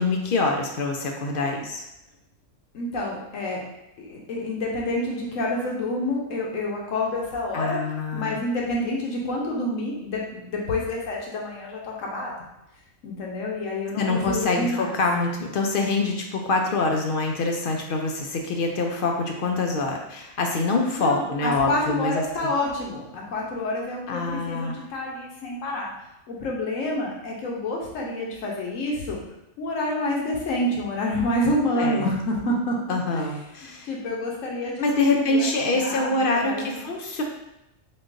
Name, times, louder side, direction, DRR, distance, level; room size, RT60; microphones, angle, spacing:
voice 1, 0.0-1.8 7.5-8.4 14.0-22.5 24.1-24.8 31.7-32.0 32.9-33.9 34.8-37.2, left 3 dB, 60° left, 2 dB, 0.6 m, -25 dB
voice 2, 2.7-3.6 4.0-7.8 8.1-12.3 13.0-14.9 20.9-25.9 26.3-29.2 29.6-32.8 33.1-33.2 33.8-36.8, left 1 dB, 90° left, -2 dB, 1.2 m, -28 dB
3.8 x 3.7 x 2.5 m, 0.87 s
omnidirectional pair, 1.3 m